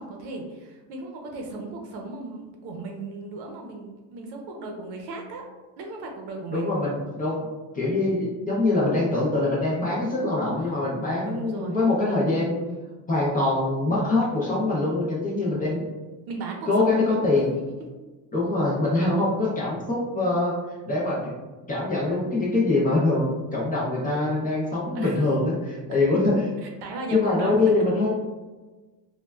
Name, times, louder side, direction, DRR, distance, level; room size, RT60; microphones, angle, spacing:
voice 1, 0.0-5.5 5.8-6.7 10.6-10.8 11.2-11.8 15.4-15.9 16.3-17.3 24.9-25.2 26.6-27.5, right 3 dB, 60° right, 1 dB, 0.7 m, -36 dB
voice 2, 6.5-7.5 7.7-12.7 13.1-15.8 16.7-17.5 18.3-20.5 20.9-21.3 21.7-26.5 27.1-28.1, left 2 dB, 20° left, -6 dB, 0.5 m, -24 dB
3.1 x 2.2 x 2.2 m, 1.2 s
cardioid pair, 150°, 45 cm